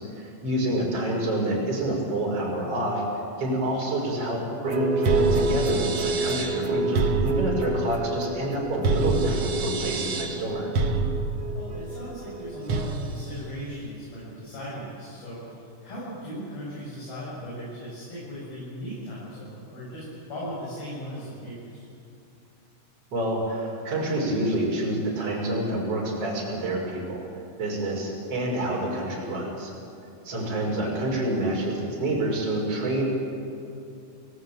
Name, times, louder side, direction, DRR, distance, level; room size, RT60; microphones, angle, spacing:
voice 1, 0.0-3.0 3.4-10.7 23.1-27.2 27.6-29.7 30.2-33.0, right 1 dB, 35° right, -3 dB, 6.7 m, -28 dB
sound 1, 4.6-13.1, right 3 dB, 55° right, 1.7 m, -26 dB
voice 2, 11.5-21.8 30.4-30.7, equal, 60° left, -8 dB, 9.4 m, -38 dB
29.5 x 19.5 x 9.1 m, 2.5 s
omnidirectional pair, 5.0 m